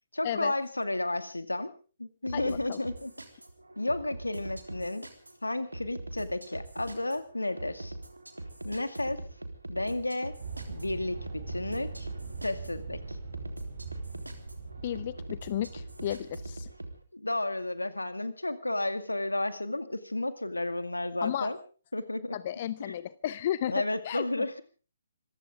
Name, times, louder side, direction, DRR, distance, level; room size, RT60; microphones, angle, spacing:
voice 1, 0.1-1.7 2.0-3.1 3.8-5.1 5.4-7.9 8.6-9.2 9.7-10.3 10.7-12.1 12.4-13.2 17.1-21.6 21.9-22.4 22.8-23.0 23.7-24.6, left 2 dB, 80° left, 12 dB, 2.2 m, -32 dB
voice 2, 2.3-2.8 14.8-16.7 21.2-21.5 22.3-24.4, left 11 dB, 40° left, 17 dB, 0.7 m, -33 dB
sound 1, 2.3-17.0, right 1 dB, 85° right, 3.5 m, -43 dB
sound 2, 10.4-16.8, right 4 dB, 55° right, 7.8 m, -42 dB
25.5 x 15.5 x 3.6 m, 0.37 s
figure-of-eight pair, 130°, 0 cm